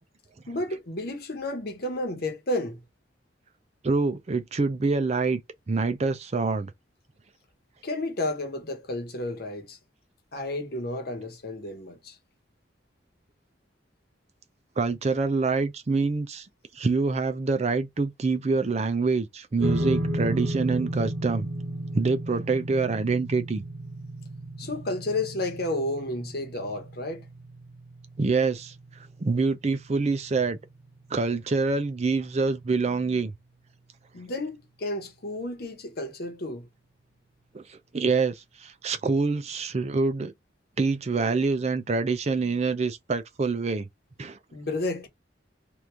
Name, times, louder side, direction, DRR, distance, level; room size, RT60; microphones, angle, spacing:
voice 1, 0.5-2.8 7.8-9.8 10.3-12.2 24.6-27.2 34.1-36.7 44.5-45.1, left 2 dB, 55° left, 1.0 m, -31 dB
voice 2, 3.8-5.4 5.7-6.7 14.8-16.5 16.7-21.5 21.9-23.6 28.2-28.7 29.2-30.6 31.1-33.3 37.5-40.3 40.8-43.9 44.2-44.4, right 4 dB, 35° right, 0.4 m, -26 dB
sound 1, 19.6-32.1, right 1 dB, 65° right, 0.9 m, -35 dB
3.0 x 2.5 x 3.3 m
head